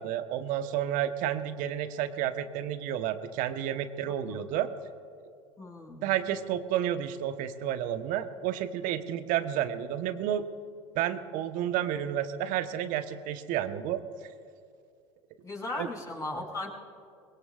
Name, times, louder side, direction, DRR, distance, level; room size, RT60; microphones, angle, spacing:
voice 1, 0.0-4.7 6.0-10.5 10.9-14.0 15.8-15.9, right 11 dB, 55° right, 9 dB, 1.1 m, -31 dB
voice 2, 5.6-6.1 15.4-16.7, left 2 dB, 20° left, -2 dB, 5.3 m, -37 dB
24.0 x 21.0 x 2.5 m, 2.3 s
hypercardioid pair, 85°, 17 cm